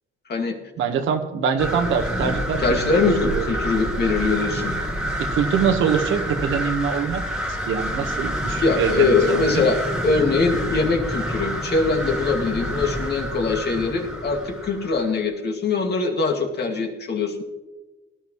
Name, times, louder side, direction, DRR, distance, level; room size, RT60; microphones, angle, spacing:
voice 1, 0.8-3.5 5.2-7.2 7.5-9.6, right 6 dB, 75° right, 5 dB, 1.3 m, -24 dB
sound 1, 1.6-15.2, equal, ahead, 2.3 m, -28 dB
voice 2, 2.6-4.8 8.6-17.4, left 4 dB, 55° left, 3 dB, 2.2 m, -22 dB
18.5 x 11.5 x 3.1 m, 1.2 s
cardioid pair, 90°, 20 cm